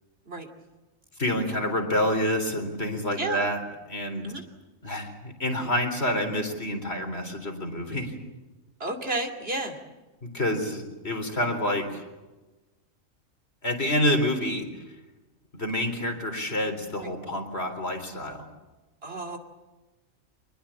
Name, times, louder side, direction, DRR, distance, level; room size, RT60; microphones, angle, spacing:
voice 1, 1.2-3.6 3.9-4.2 4.8-8.1 10.2-12.0 13.6-14.7 15.5-18.5, left 1 dB, 50° left, 5 dB, 4.2 m, -28 dB
voice 2, 8.8-9.8 17.0-17.1 19.0-19.4, right 2 dB, 45° right, 4 dB, 2.8 m, -32 dB
25.5 x 21.0 x 8.7 m, 1.1 s
omnidirectional pair, 1.4 m